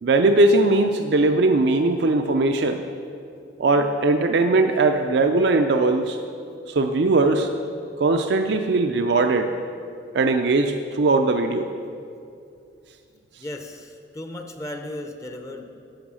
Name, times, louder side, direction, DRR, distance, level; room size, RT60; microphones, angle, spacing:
voice 1, 0.0-2.8 3.6-6.2 6.7-7.5 8.0-9.5 10.1-11.7, right 2 dB, 60° right, 5 dB, 0.4 m, -20 dB
voice 2, 13.4-15.7, left 1 dB, 15° left, 5 dB, 0.6 m, -35 dB
11.5 x 6.4 x 6.2 m, 2.5 s
head